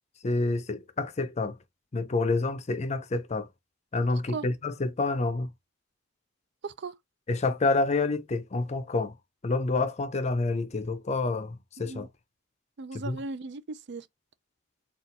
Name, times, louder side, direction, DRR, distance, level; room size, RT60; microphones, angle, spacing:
voice 1, 0.2-1.6 1.9-3.5 3.9-5.5 7.3-9.1 9.4-12.1 12.9-13.2, left 3 dB, 35° left, 0.5 m, -28 dB
voice 2, 6.6-6.9 11.8-12.1 12.8-14.1, right 3 dB, 60° right, 0.5 m, -37 dB
4.2 x 2.4 x 3.9 m
head